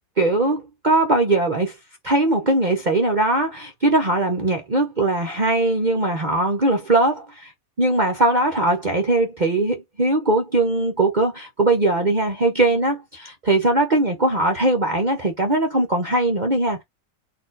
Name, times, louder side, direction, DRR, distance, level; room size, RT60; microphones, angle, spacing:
voice 1, 0.2-1.7 2.0-7.5 7.8-16.8, right 2 dB, 45° right, 0.6 m, -20 dB
4.2 x 2.7 x 3.8 m
omnidirectional pair, 1.9 m